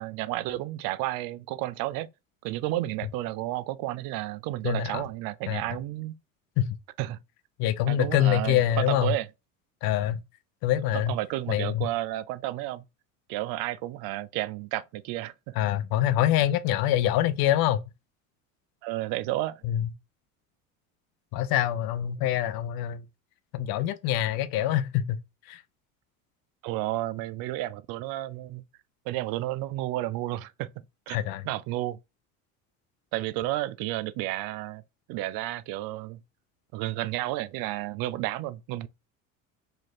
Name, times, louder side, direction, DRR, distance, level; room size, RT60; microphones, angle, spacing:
voice 1, 0.0-2.1 2.4-6.1 7.0-7.2 7.9-9.3 10.9-12.8 13.3-15.5 18.8-19.6 26.6-28.6 29.1-30.7 31.1-31.2 31.4-32.0 33.1-34.8 35.1-36.2 36.7-38.9, right 16 dB, 60° right, 0.5 m, -31 dB
voice 2, 4.6-5.0 5.5-5.6 6.6-6.8 7.6-9.1 9.8-10.2 10.6-11.1 11.5-11.9 15.6-17.8 19.6-19.9 21.3-23.0 23.5-25.2 25.5-25.6 31.1-31.4, left 12 dB, 60° left, 0.5 m, -25 dB
3.0 x 2.6 x 4.0 m
hypercardioid pair, 80°, 41 cm